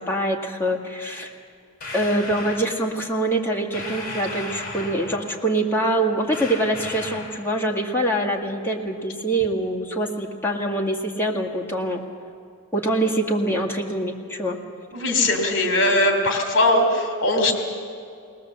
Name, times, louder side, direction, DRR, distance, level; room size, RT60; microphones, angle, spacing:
voice 1, 0.0-1.3 1.9-12.0 12.7-14.6, right 1 dB, 10° left, -2 dB, 1.9 m, -24 dB
sound 1, 1.8-2.7 3.7-5.3 6.3-7.4, left 2 dB, 45° left, 4.8 m, -35 dB
voice 2, 14.9-17.5, left 1 dB, 65° left, 4 dB, 2.8 m, -20 dB
20.0 x 19.5 x 7.6 m, 2.4 s
head